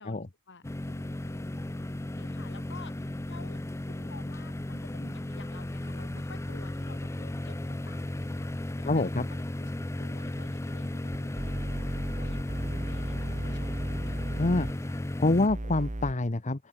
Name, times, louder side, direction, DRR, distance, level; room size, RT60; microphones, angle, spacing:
voice 1, 0.0-14.2, left 3 dB, 55° left, 6.8 m, -52 dB
sound 1, 0.6-15.5, left 1 dB, 15° left, 0.5 m, -35 dB
voice 2, 8.9-9.2 14.4-16.7, left 2 dB, 35° left, 1.0 m, -27 dB
sound 2, 11.1-14.7 15.5-16.1, right 1 dB, 35° right, 2.1 m, -35 dB
open air
head